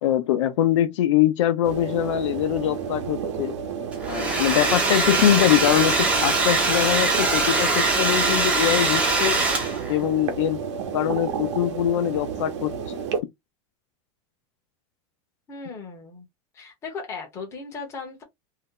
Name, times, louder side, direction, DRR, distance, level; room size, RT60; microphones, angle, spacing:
voice 1, 0.0-3.6 4.1-9.4 9.9-10.6 10.9-13.0, left 12 dB, 85° left, 0.7 m, -23 dB
sound 1, 1.6-13.2, right 7 dB, 85° right, 0.9 m, -31 dB
Domestic sounds home sounds, 3.9-10.0, right 3 dB, 10° right, 0.7 m, -22 dB
voice 2, 15.5-16.3 16.5-18.2, left 4 dB, 20° left, 0.9 m, -37 dB
2.7 x 2.1 x 3.7 m
supercardioid pair, 175°, 15 cm